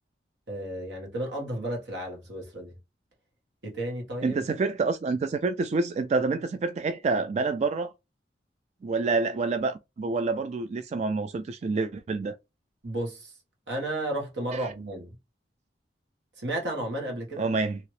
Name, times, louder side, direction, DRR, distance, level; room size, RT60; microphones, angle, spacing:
voice 1, 0.5-2.7 3.6-4.4 12.8-13.3 13.7-15.1 16.4-17.5, right 1 dB, 85° right, 1.5 m, -33 dB
voice 2, 4.2-7.9 8.8-12.3 14.5-14.7 17.4-17.8, right 4 dB, 40° right, 0.3 m, -27 dB
2.9 x 2.8 x 3.1 m
head